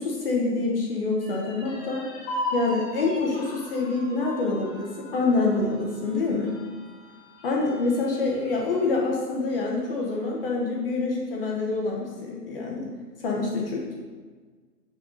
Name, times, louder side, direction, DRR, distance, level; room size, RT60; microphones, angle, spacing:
voice 1, 0.0-2.1 2.5-6.6 7.4-12.9 13.2-14.0, left 3 dB, 35° left, -2 dB, 0.9 m, -26 dB
sound 1, 1.2-8.9 9.3-9.4 9.8-10.5, left 1 dB, 15° left, 1.2 m, -38 dB
6.3 x 5.5 x 3.9 m, 1.5 s
hypercardioid pair, 140°, 49 cm